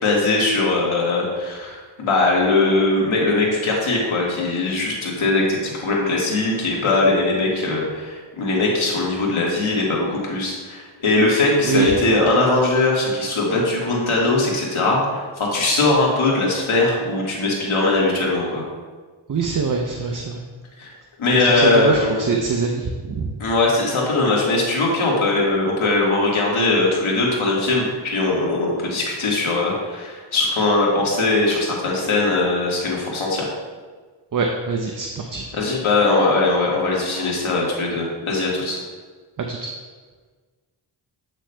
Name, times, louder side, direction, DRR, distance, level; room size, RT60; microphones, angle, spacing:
voice 1, 0.0-18.7 20.8-20.9 21.2-22.1 23.4-33.5 35.5-38.8, left 2 dB, 75° left, -3 dB, 1.7 m, -20 dB
voice 2, 11.6-12.0 19.3-20.4 21.3-23.3 34.3-35.5 39.5-39.7, right 4 dB, 40° right, 2 dB, 0.6 m, -24 dB
8.2 x 6.1 x 2.2 m, 1.4 s
cardioid pair, 60°, 48 cm